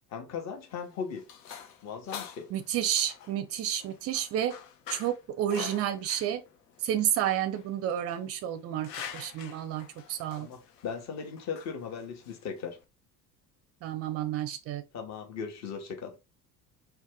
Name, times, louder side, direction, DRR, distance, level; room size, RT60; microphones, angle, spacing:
voice 1, 0.1-1.3 1.8-2.5 10.4-12.8 14.9-16.2, left 6 dB, 35° left, 0.8 m, -38 dB
sound 1, 0.5-12.8, left 8 dB, 75° left, 0.6 m, -46 dB
voice 2, 2.5-4.5 4.9-6.4 6.8-10.5 13.8-14.8, right 10 dB, 30° right, 0.5 m, -30 dB
2.5 x 2.2 x 3.3 m
figure-of-eight pair, 60°, 50 cm